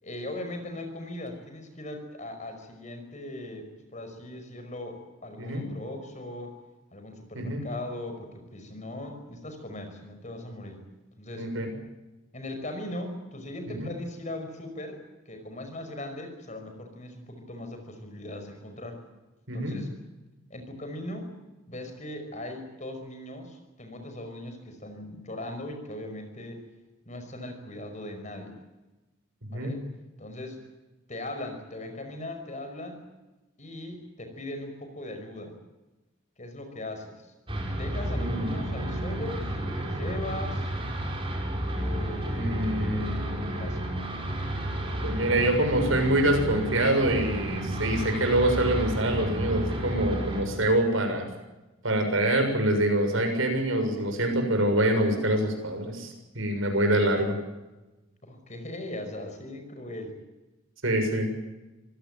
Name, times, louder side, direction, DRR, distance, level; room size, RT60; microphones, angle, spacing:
voice 1, 0.0-6.5 6.9-10.8 11.2-11.5 12.3-19.0 19.5-19.9 20.5-21.3 21.7-26.6 27.1-28.6 29.5-29.8 30.2-30.6 31.1-33.1 33.6-35.6 36.4-37.2 37.7-40.7 41.8-42.8 43.4-43.8 58.2-60.2, left 1 dB, 35° left, 6 dB, 5.5 m, -39 dB
sound 1, 37.5-50.4, right 1 dB, 25° right, 5.6 m, -31 dB
voice 2, 38.1-38.5 42.3-43.6 45.0-51.3 51.8-57.4 60.8-61.3, right 1 dB, 75° right, 5 dB, 7.0 m, -25 dB
25.5 x 17.0 x 9.1 m, 1.1 s
head